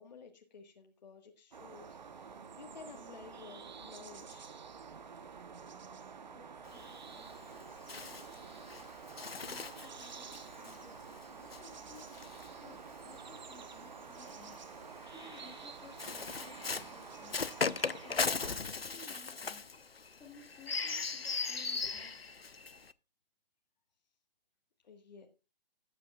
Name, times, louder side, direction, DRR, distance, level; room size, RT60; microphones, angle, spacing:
voice 1, 0.0-4.5 24.8-25.3, left 5 dB, 45° left, 3 dB, 1.6 m, -54 dB
sound 1, 1.5-18.6, right 6 dB, 50° right, 1.0 m, -49 dB
Bird, 6.6-13.2 14.1-22.9, left 4 dB, 80° left, 0.8 m, -39 dB
voice 2, 6.7-7.5 9.4-12.0 12.6-14.6 15.1-17.4 18.0-19.7 20.2-22.1, left 3 dB, 10° left, 1 dB, 1.9 m, -57 dB
18.0 x 8.6 x 2.4 m, 0.30 s
figure-of-eight pair, 140°, 30 cm